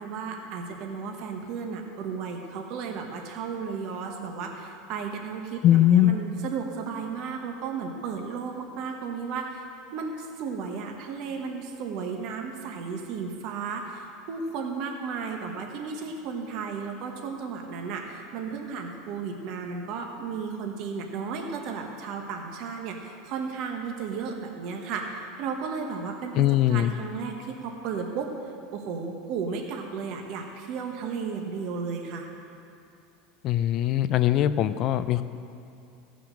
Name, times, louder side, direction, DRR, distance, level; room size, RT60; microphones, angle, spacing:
voice 1, 0.0-9.6 9.9-28.3 28.7-32.3, right 5 dB, 55° right, 2 dB, 1.3 m, -34 dB
voice 2, 5.6-6.1 26.3-26.9 33.4-35.2, left 12 dB, 45° left, 12 dB, 0.4 m, -21 dB
15.5 x 5.9 x 6.4 m, 2.5 s
supercardioid pair, 135°, 0 cm